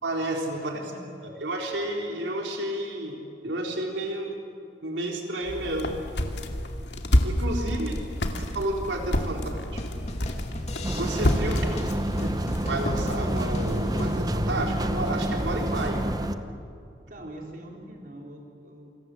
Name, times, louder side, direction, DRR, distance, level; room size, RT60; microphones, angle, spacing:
voice 1, 0.0-0.8 1.2-4.4 4.8-6.0 7.2-8.0 8.4-9.4 9.7-9.8 10.9-11.7 12.2-12.3 12.7-16.1, right 1 dB, 85° right, 1 dB, 4.0 m, -31 dB
sound 1, 5.4-16.0, left 1 dB, 75° left, 2.4 m, -30 dB
sound 2, 8.7-14.2, left 1 dB, 40° left, 2.7 m, -38 dB
sound 3, 10.8-16.4, right 1 dB, 20° right, 0.9 m, -29 dB
voice 2, 17.1-18.9, right 1 dB, 50° right, 0 dB, 3.8 m, -44 dB
28.5 x 26.0 x 7.8 m, 2.5 s
head